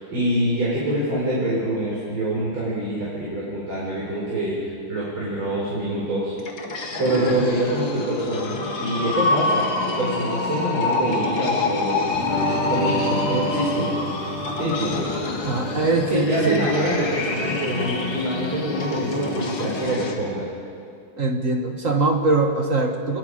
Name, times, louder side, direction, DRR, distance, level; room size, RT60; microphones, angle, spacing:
voice 1, 0.0-6.3 7.0-9.7 10.0-12.1 12.7-13.9 14.6-15.2 16.1-20.4, right 1 dB, 75° right, -7 dB, 5.6 m, -25 dB
sound 1, 6.4-20.2, left 3 dB, 70° left, 2.6 m, -27 dB
voice 2, 7.1-7.4 15.4-16.7 21.2-23.2, right 3 dB, 45° right, 4 dB, 1.5 m, -22 dB
sound 2, 12.1-19.9, equal, 15° right, 3.4 m, -31 dB
28.0 x 21.0 x 5.0 m, 2.3 s
omnidirectional pair, 2.2 m